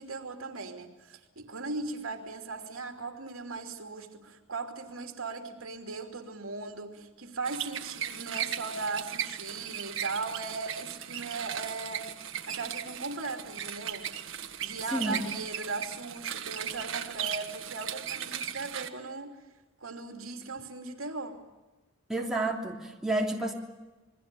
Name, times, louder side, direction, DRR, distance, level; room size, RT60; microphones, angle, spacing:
voice 1, 0.0-12.1 12.5-14.1 14.6-19.4 19.8-21.4, right 3 dB, 80° right, 5 dB, 2.9 m, -38 dB
sound 1, 7.5-18.9, right 9 dB, 65° right, 1.6 m, -37 dB
voice 2, 22.1-23.5, right 2 dB, ahead, -1 dB, 3.0 m, -30 dB
28.0 x 21.5 x 6.9 m, 1.1 s
head